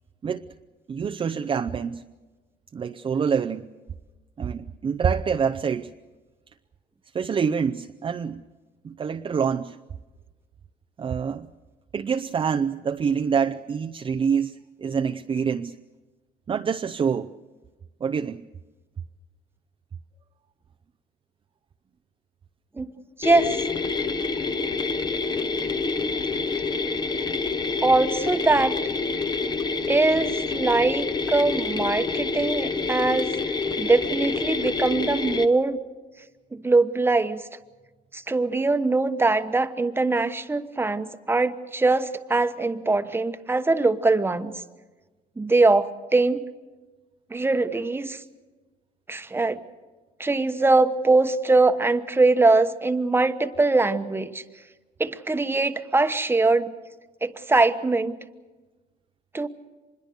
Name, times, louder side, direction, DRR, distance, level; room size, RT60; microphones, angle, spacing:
voice 1, 0.9-2.0 2.7-3.7 4.4-5.9 7.1-8.4 8.8-9.8 11.0-11.5 11.9-15.8 16.5-17.3 18.0-18.4, right 6 dB, 30° right, 5 dB, 0.6 m, -26 dB
sound 1, 23.2-35.5, left 4 dB, 25° left, 1.1 m, -27 dB
voice 2, 23.2-23.6 27.8-28.8 29.9-35.8 36.5-37.4 38.1-44.5 45.4-46.4 47.3-48.2 49.1-49.6 50.2-54.4 55.0-56.7 57.2-58.2 59.3-59.5, right 3 dB, 15° right, 10 dB, 1.2 m, -22 dB
25.0 x 21.5 x 6.7 m, 1.3 s
cardioid pair, 110°, 17 cm